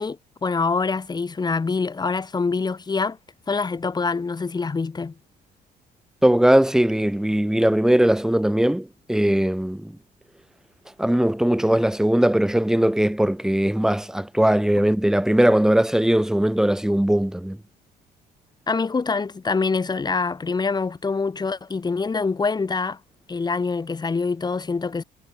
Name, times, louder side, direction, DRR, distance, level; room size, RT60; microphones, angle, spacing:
voice 1, 0.0-3.2 3.5-5.1 18.7-23.0 23.3-25.0, left 4 dB, 25° left, 6.6 m, -25 dB
voice 2, 6.2-10.0 11.0-17.6, right 1 dB, 5° right, 2.7 m, -20 dB
cardioid pair, 110°, 17 cm